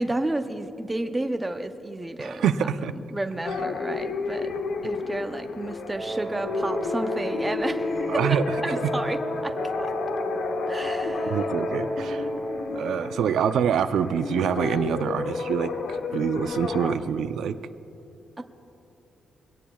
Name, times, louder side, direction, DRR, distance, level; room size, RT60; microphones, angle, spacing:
voice 1, 0.0-2.7 3.0-4.5 4.8-7.9 8.2-9.9 10.7-11.4 12.7-13.2 18.4-18.5, right 1 dB, 10° right, 6 dB, 0.6 m, -32 dB
voice 2, 2.2-2.9 8.1-8.8 11.3-12.3 12.7-15.7 16.1-17.5, right 8 dB, 85° right, 10 dB, 0.5 m, -26 dB
sound 1, 3.4-17.0, left 4 dB, 65° left, 0.9 m, -32 dB
Wind instrument woodwind instrument, 5.9-12.7, equal, 25° right, 1.5 m, -32 dB
22.5 x 17.5 x 2.3 m, 3.0 s
wide cardioid pair, 180°, 0 cm